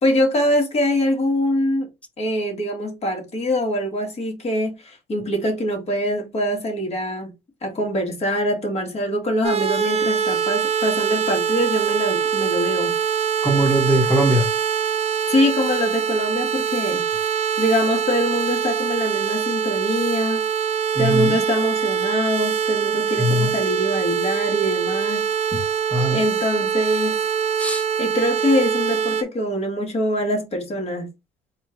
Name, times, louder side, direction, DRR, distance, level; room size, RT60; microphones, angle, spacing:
voice 1, 0.0-1.9 2.2-7.3 7.6-12.9 15.3-17.0 17.6-20.5 21.0-25.3 26.1-27.2 28.0-31.1, equal, 40° left, 1.9 m, -23 dB
sound 1, 9.4-29.2, right 7 dB, 40° right, 0.6 m, -23 dB
voice 2, 13.4-14.5 20.9-21.4 23.2-23.5 25.5-25.6 25.9-26.2 27.6-27.9, right 1 dB, 10° left, 0.9 m, -20 dB
4.3 x 2.5 x 4.4 m
cardioid pair, 110°, 17 cm